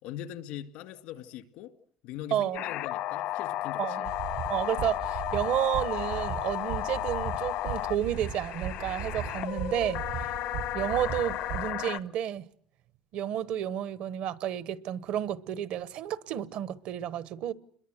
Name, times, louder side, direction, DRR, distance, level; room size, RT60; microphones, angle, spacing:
voice 1, 0.0-1.7 2.0-4.1, left 11 dB, 90° left, 2.3 m, -41 dB
voice 2, 2.3-2.7 3.8-4.1 4.5-10.3 10.7-12.5 13.1-17.5, right 11 dB, 70° right, 1.1 m, -31 dB
sound 1, 2.5-12.0, left 14 dB, 75° left, 1.0 m, -34 dB
sound 2, 4.0-11.7, right 9 dB, 90° right, 5.8 m, -38 dB
29.0 x 22.0 x 7.9 m
cardioid pair, 140°, 2 cm